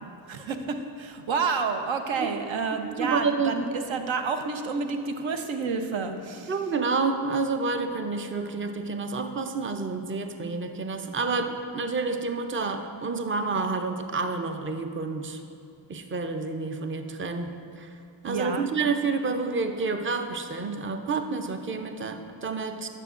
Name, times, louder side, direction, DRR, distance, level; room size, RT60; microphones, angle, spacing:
voice 1, 0.3-6.5 18.3-18.7, right 4 dB, 70° right, 6 dB, 0.7 m, -29 dB
voice 2, 2.7-3.6 6.5-15.4 15.9-17.9 18.2-22.9, right 4 dB, 25° right, 6 dB, 0.5 m, -29 dB
10.5 x 6.6 x 2.5 m, 2.7 s
cardioid pair, 55°, 47 cm